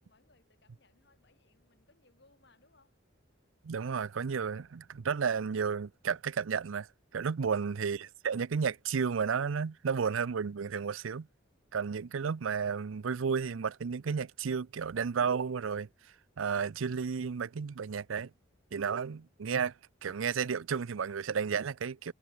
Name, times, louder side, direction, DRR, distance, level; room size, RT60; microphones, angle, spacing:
voice 1, 0.0-3.0, left 3 dB, 60° left, 6.1 m, -67 dB
voice 2, 3.6-6.9 7.1-11.3 11.7-15.9 16.4-18.3 18.7-19.7 20.0-22.1, right 6 dB, 90° right, 0.5 m, -32 dB
head